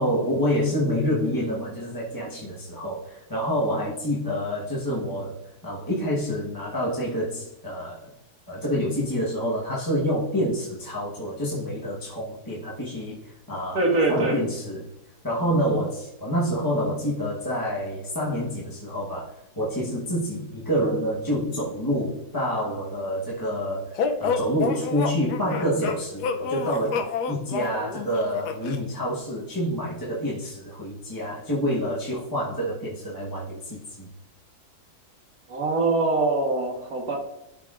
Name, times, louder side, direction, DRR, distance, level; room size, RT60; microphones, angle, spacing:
voice 1, 0.0-8.1 8.5-13.8 14.1-14.9 15.2-34.1, equal, 15° left, -6 dB, 1.0 m, -27 dB
voice 2, 13.7-14.4 35.5-37.2, right 2 dB, 70° right, -1 dB, 1.9 m, -23 dB
sound 1, 24.0-28.8, left 5 dB, 85° left, 1.2 m, -29 dB
12.0 x 4.6 x 2.4 m, 0.84 s
omnidirectional pair, 1.7 m